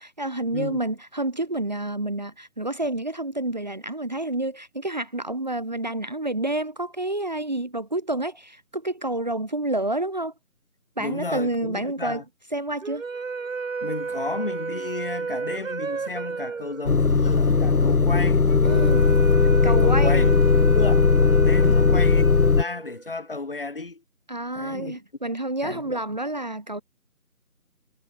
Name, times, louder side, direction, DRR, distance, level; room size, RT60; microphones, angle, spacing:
voice 1, 0.0-10.3 11.0-12.2 12.5-13.0 18.6-19.1 19.6-20.3 21.6-22.0 24.3-26.8, right 1 dB, 30° right, 1.8 m, -29 dB
voice 2, 11.0-12.2 13.8-18.5 19.6-24.0 24.5-25.0 25.6-26.0, left 3 dB, 35° left, 4.8 m, -33 dB
sound 1, 12.8-23.2, right 4 dB, 60° right, 0.7 m, -32 dB
Motor vehicle (road) / Engine starting / Idling, 16.9-22.6, left 4 dB, 70° left, 1.1 m, -18 dB
figure-of-eight pair, 170°, 45 cm